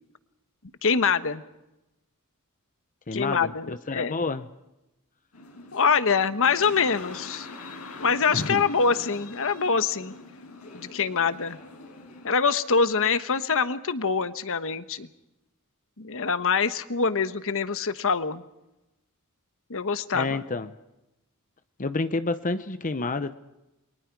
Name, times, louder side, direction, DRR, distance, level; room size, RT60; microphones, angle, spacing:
voice 1, 0.8-1.4 3.1-4.2 5.7-7.5 8.0-10.1 10.7-11.6 12.2-15.1 16.0-18.4 19.7-20.4, left 5 dB, 65° left, 11 dB, 1.2 m, -25 dB
voice 2, 3.1-4.4 8.3-8.6 20.1-20.7 21.8-23.3, left 3 dB, 35° left, 11 dB, 0.8 m, -29 dB
sound 1, 5.3-12.3, left 2 dB, 85° left, 5.1 m, -42 dB
29.5 x 23.0 x 4.7 m, 0.96 s
head